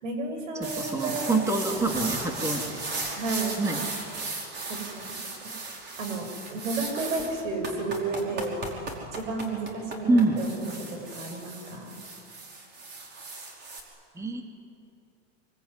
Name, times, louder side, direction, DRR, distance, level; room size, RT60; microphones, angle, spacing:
voice 1, 0.0-1.4 3.2-3.6 4.7-5.1 6.0-8.6 9.1-12.0, right 3 dB, 90° right, 5 dB, 7.2 m, -32 dB
voice 2, 0.6-2.8 3.6-3.9 10.1-10.4 14.1-14.4, right 2 dB, 10° right, 3 dB, 2.3 m, -26 dB
sound 1, 0.6-13.8, right 3 dB, 30° right, 5.2 m, -36 dB
25.5 x 23.5 x 9.8 m, 2.7 s
supercardioid pair, 150°, 37 cm